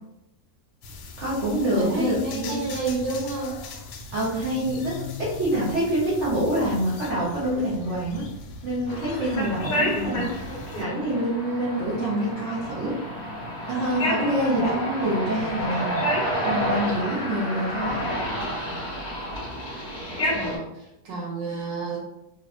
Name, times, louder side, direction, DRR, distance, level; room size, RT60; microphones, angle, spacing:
sound 1, 0.8-10.8, left 3 dB, 90° left, 1.3 m, -40 dB
voice 1, 1.2-2.7 4.1-8.3 8.6-10.3 10.7-13.0 13.7-16.0 16.4-18.1, right 1 dB, 55° right, -7 dB, 0.9 m, -26 dB
voice 2, 1.8-3.6 9.9-10.4 20.3-22.0, right 3 dB, 90° right, -2 dB, 1.5 m, -30 dB
sound 2, 8.9-20.6, equal, 40° left, 0.7 m, -29 dB
3.3 x 2.6 x 2.4 m, 0.85 s
omnidirectional pair, 1.9 m